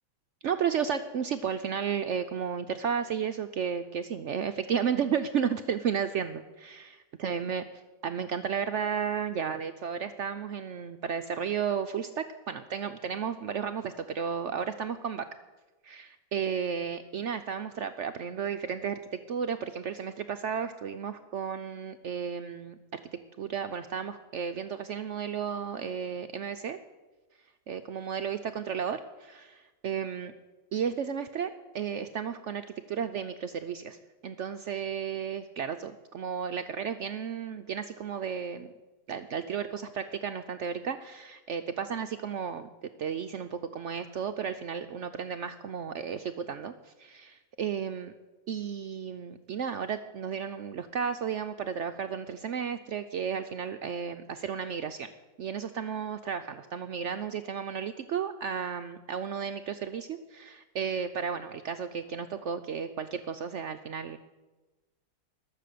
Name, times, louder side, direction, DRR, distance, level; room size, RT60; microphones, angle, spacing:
voice 1, 0.4-6.9 7.2-7.6 8.0-15.2 15.8-23.0 23.4-26.8 27.7-30.3 30.7-34.0 34.2-38.7 39.1-42.7 43.0-48.1 48.5-55.1 55.4-64.2, right 7 dB, 70° right, 8 dB, 0.7 m, -33 dB
20.5 x 6.9 x 6.7 m, 1.2 s
omnidirectional pair, 1.8 m